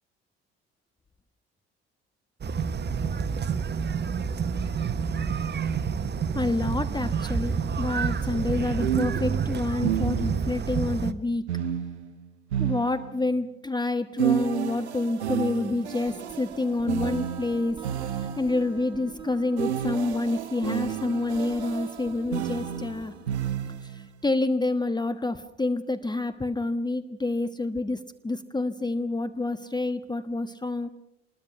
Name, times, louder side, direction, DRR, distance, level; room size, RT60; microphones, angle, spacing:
sound 1, 2.4-11.1, right 6 dB, 30° right, 1.3 m, -28 dB
voice 1, 6.3-11.6 12.6-23.1 23.8-30.9, left 2 dB, 15° left, 10 dB, 1.2 m, -28 dB
sound 2, 8.8-10.6 11.5-13.4 14.2-18.7 19.6-24.1, right 10 dB, 80° right, 0.9 m, -31 dB
sound 3, 16.1-23.6, right 3 dB, 15° right, 5.3 m, -44 dB
26.5 x 21.5 x 6.0 m, 0.84 s
figure-of-eight pair, 55°, 33 cm